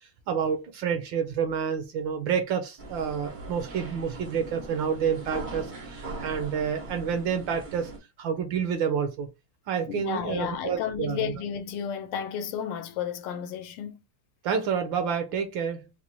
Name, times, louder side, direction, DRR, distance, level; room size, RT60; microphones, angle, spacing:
voice 1, 0.3-7.9 8.2-9.3 9.7-11.3 14.4-15.9, right 7 dB, 70° right, 1.3 m, -29 dB
sound 1, 2.8-8.0, right 2 dB, 90° right, 0.4 m, -40 dB
voice 2, 9.9-14.0, left 8 dB, 80° left, 1.4 m, -32 dB
4.3 x 2.2 x 2.9 m
omnidirectional pair, 2.4 m